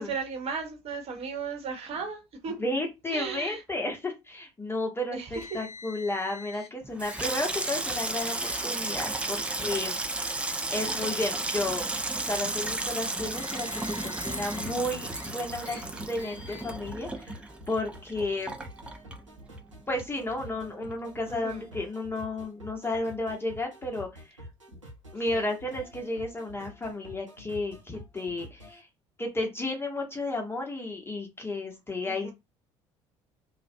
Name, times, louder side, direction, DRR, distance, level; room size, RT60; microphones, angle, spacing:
voice 1, 0.0-2.5 3.1-3.6 5.1-5.6 21.3-21.6 25.3-25.5 32.0-32.3, right 5 dB, 40° right, 0.9 m, -36 dB
voice 2, 2.6-11.9 12.3-15.8 16.1-18.6 19.9-24.4 24.7-24.8 25.1-28.9 29.2-32.3, left 2 dB, 15° left, 0.8 m, -33 dB
Car, 5.3-6.7 7.1-7.2 7.6-7.8 8.2-8.7 9.6-9.7 10.7-10.8 13.1-14.7 15.1-15.3 15.6-15.8 16.2-16.8, left 4 dB, 50° left, 0.9 m, -45 dB
Water tap faucet / Sink (filling or washing), 6.8-19.7 20.0-20.6 20.9-21.2, right 2 dB, 5° right, 0.4 m, -33 dB
sound 1, 14.6-28.8, equal, 85° right, 0.6 m, -48 dB
2.4 x 2.0 x 2.6 m
figure-of-eight pair, 55°, 16 cm